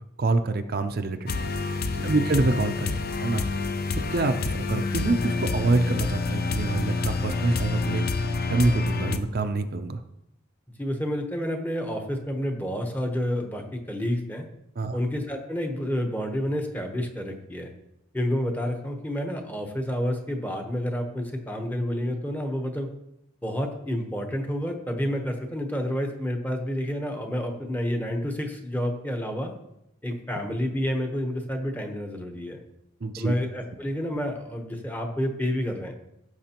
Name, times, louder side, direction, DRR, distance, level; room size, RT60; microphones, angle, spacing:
voice 1, 0.2-1.3 2.0-3.4 4.1-8.0 8.5-10.0 14.8-15.0 33.0-33.3, right 2 dB, 45° right, 7 dB, 0.5 m, -26 dB
sound 1, 1.3-9.2, left 3 dB, 45° left, 0.5 m, -28 dB
voice 2, 1.9-2.3 10.8-14.4 14.9-17.7 18.1-22.9 23.4-29.5 30.0-32.6 33.2-35.9, equal, 10° left, 3 dB, 0.9 m, -29 dB
15.5 x 6.6 x 2.9 m, 0.84 s
head